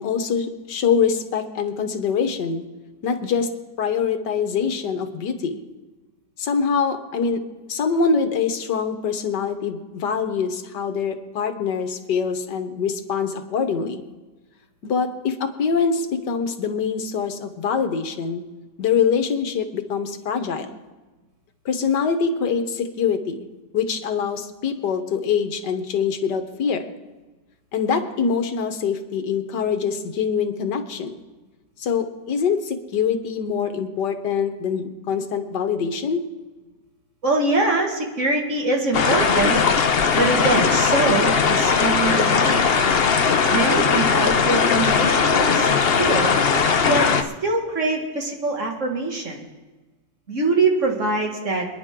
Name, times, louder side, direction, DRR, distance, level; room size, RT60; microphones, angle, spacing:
voice 1, 0.0-2.6 3.0-3.5 3.8-5.6 6.4-7.4 7.7-14.0 14.8-18.4 18.8-20.8 21.6-23.5 23.7-26.9 27.7-31.2 31.8-36.2, left 6 dB, 70° left, 8 dB, 1.7 m, -24 dB
voice 2, 37.2-39.6 40.2-42.7 43.5-46.3 46.8-49.4 50.3-51.7, right 2 dB, 45° right, 1 dB, 2.3 m, -23 dB
sound 1, 38.9-47.2, left 5 dB, 50° left, 0.7 m, -19 dB
26.5 x 10.0 x 3.7 m, 1.2 s
omnidirectional pair, 1.9 m